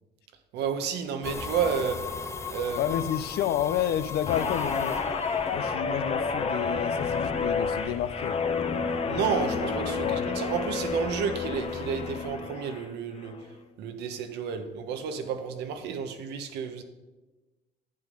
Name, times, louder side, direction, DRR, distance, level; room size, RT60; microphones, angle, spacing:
voice 1, 0.5-2.1 2.5-2.8 9.1-13.5 13.8-16.8, right 6 dB, 85° right, 1.2 m, -31 dB
sound 1, 1.2-12.2, left 4 dB, 15° left, 0.7 m, -40 dB
voice 2, 2.8-5.0 5.5-8.4 10.0-10.3, left 10 dB, 70° left, 0.6 m, -30 dB
Guitar, 4.3-12.9 13.2-13.6, left 5 dB, 35° left, 1.0 m, -30 dB
10.5 x 8.4 x 5.4 m
cardioid pair, 110°, 17 cm